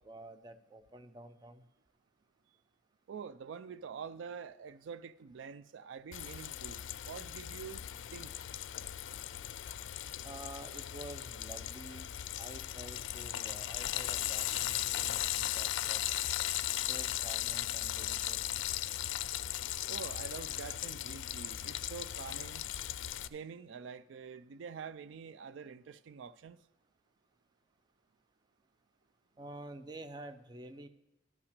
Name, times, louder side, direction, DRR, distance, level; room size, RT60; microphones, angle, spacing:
voice 1, 0.0-1.6 10.2-12.1 12.4-16.1 16.7-18.4 29.4-30.9, right 2 dB, 25° right, 0.5 m, -49 dB
voice 2, 3.1-7.8 8.1-8.3 19.9-22.7 23.3-26.6, right 6 dB, 80° right, 0.4 m, -46 dB
Frying (food), 6.1-23.3, left 13 dB, 80° left, 0.4 m, -37 dB
12.0 x 5.8 x 6.6 m
head